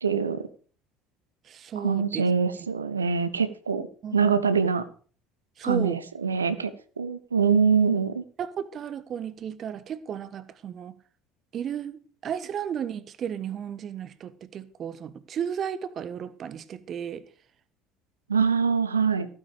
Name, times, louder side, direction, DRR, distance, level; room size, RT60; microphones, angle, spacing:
voice 1, 0.0-0.5 1.8-3.9 4.1-4.9 5.6-6.7 7.0-8.2 18.3-19.3, right 5 dB, 80° right, 0.9 m, -24 dB
voice 2, 1.5-2.3 4.0-4.2 5.6-6.0 8.4-10.9 11.5-17.2, right 8 dB, 40° right, 1.2 m, -34 dB
15.5 x 9.6 x 5.1 m
figure-of-eight pair, 60°, 0 cm